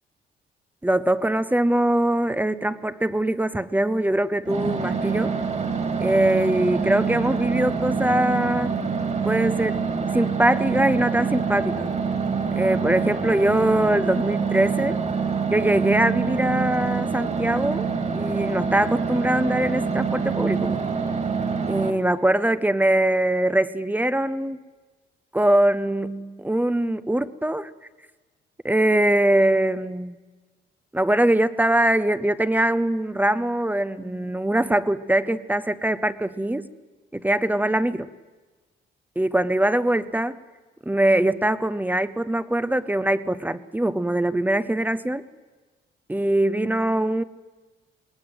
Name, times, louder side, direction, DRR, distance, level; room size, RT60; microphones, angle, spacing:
voice 1, 0.8-5.4 6.0-8.7 9.2-9.8 10.1-11.9 12.5-15.0 15.5-17.9 18.1-20.8 21.7-24.6 25.3-27.7 28.6-30.2 30.9-36.7 37.1-38.1 39.2-40.4 40.9-45.2 46.1-47.2, right 1 dB, 10° right, 14 dB, 0.7 m, -22 dB
sound 1, 4.4-21.9, right 5 dB, 35° right, 2.4 m, -26 dB
20.0 x 19.5 x 7.9 m, 1.3 s
cardioid pair, 90°, 20 cm